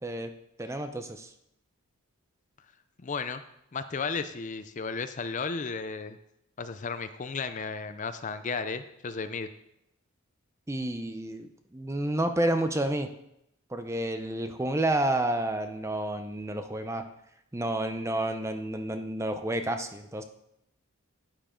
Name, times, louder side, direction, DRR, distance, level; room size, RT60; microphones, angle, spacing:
voice 1, 0.0-0.3 0.6-1.3 10.7-13.1 13.7-17.1 17.5-20.2, right 1 dB, 15° right, 8 dB, 0.6 m, -30 dB
voice 2, 3.0-3.4 3.7-6.2 6.6-9.5, left 4 dB, 35° left, 11 dB, 0.4 m, -34 dB
11.5 x 9.1 x 3.8 m, 0.80 s
head